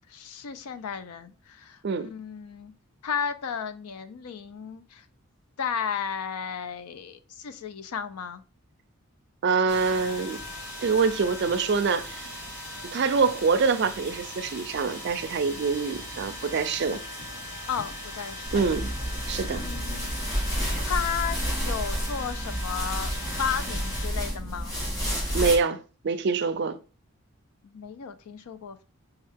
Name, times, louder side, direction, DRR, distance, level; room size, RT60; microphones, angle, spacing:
voice 1, 0.1-2.7 3.0-5.1 5.6-8.4 17.7-18.7 19.5-20.1 20.8-23.1 23.4-24.8 27.6-28.8, left 7 dB, 90° left, 0.4 m, -34 dB
voice 2, 9.4-10.4 10.8-12.4 12.8-17.0 18.5-18.9 19.3-19.6 25.3-26.8, right 5 dB, 50° right, 0.4 m, -25 dB
sound 1, 9.7-24.1, left 1 dB, 55° left, 1.4 m, -39 dB
sound 2, 18.4-25.6, equal, 20° left, 2.2 m, -30 dB
5.4 x 2.3 x 3.4 m
head